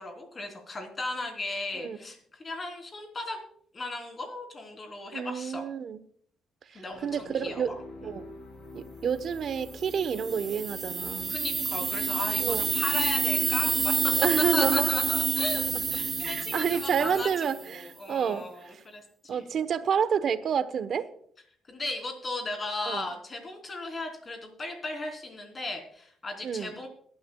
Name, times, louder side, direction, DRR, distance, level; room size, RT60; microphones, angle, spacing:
voice 1, 0.0-3.4 3.7-5.6 6.7-7.7 11.3-14.1 14.5-19.4 21.7-26.9, left 2 dB, 35° left, 3 dB, 3.6 m, -36 dB
voice 2, 5.1-6.0 6.7-8.3 8.7-11.4 12.4-12.6 14.2-14.9 16.2-18.8 19.3-21.1 22.9-23.1 26.4-26.8, right 7 dB, 60° right, 13 dB, 1.0 m, -29 dB
sound 1, 6.9-17.2, left 2 dB, 75° left, 4.0 m, -46 dB
sound 2, 9.8-17.7, right 4 dB, 35° right, 0.4 m, -29 dB
22.0 x 12.0 x 2.3 m, 0.62 s
cardioid pair, 90°, 0 cm